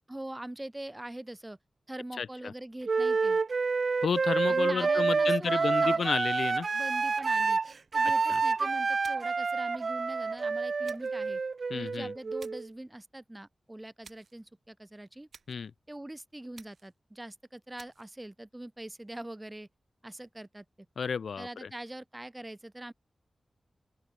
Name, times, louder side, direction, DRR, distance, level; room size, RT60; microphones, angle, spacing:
voice 1, 0.1-1.6 1.9-3.4 4.5-6.1 6.7-7.6 7.9-11.4 11.7-15.3 15.9-19.7 20.0-20.6 21.4-22.9, right 1 dB, 15° right, 6.0 m, -43 dB
voice 2, 2.2-2.5 4.0-6.7 8.3-8.4 11.7-12.1 15.5-15.7 21.0-21.7, left 6 dB, 85° left, 1.6 m, -32 dB
Wind instrument woodwind instrument, 2.8-12.7, right 4 dB, 50° right, 0.9 m, -28 dB
sound 1, 9.0-9.5 10.8-11.2 12.4-12.8 14.0-14.4 15.3-15.7 16.5-17.0 17.8-18.1, right 5 dB, 70° right, 5.9 m, -55 dB
open air
wide cardioid pair, 145°, 0 cm